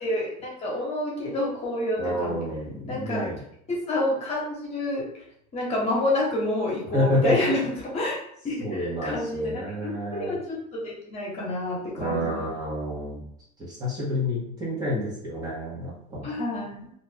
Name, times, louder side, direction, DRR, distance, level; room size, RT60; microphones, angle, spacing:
voice 1, 0.0-2.4 2.9-3.3 3.7-5.1 5.5-8.2 8.4-12.5 16.2-16.9, left 1 dB, 35° left, -4 dB, 1.2 m, -28 dB
voice 2, 2.0-3.4 6.9-7.4 8.6-10.3 12.0-13.3 13.6-16.3, left 1 dB, 20° right, -7 dB, 1.2 m, -29 dB
2.7 x 2.4 x 3.5 m, 0.71 s
supercardioid pair, 130°, 19 cm